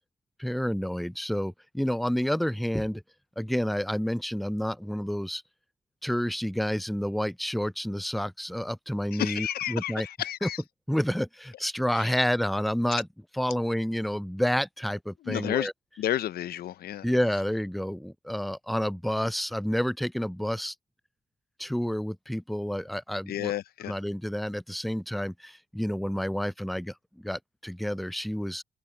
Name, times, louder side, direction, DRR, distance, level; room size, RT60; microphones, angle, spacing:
voice 1, 0.4-3.0 3.4-5.4 6.0-10.1 10.4-10.5 10.9-13.1 13.3-15.7 17.0-20.7 21.6-23.5 23.9-28.6, equal, ahead, 0.4 m, -29 dB
voice 2, 9.1-10.6 11.9-12.2 15.2-15.7 16.0-17.1 23.3-23.9, left 12 dB, 70° left, 0.7 m, -31 dB
open air
supercardioid pair, 50°, 16 cm